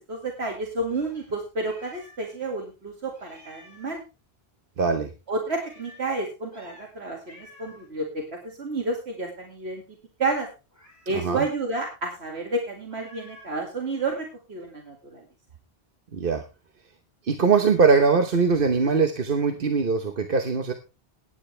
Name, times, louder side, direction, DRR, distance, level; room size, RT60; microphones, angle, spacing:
voice 1, 0.1-4.0 5.3-9.8 10.2-10.5 11.1-15.2, right 2 dB, 85° right, 2 dB, 2.5 m, -30 dB
Meow, 0.9-2.4 2.6-2.7 3.1-4.0 5.5-6.1 6.5-6.9 7.3-7.9 10.7-11.3 12.9-13.6, left 1 dB, 15° right, 4.5 m, -51 dB
voice 2, 4.8-5.1 11.1-11.4 16.1-16.4 17.2-20.7, right 5 dB, 60° right, 7 dB, 1.2 m, -21 dB
16.0 x 10.5 x 3.3 m, 0.29 s
omnidirectional pair, 1.1 m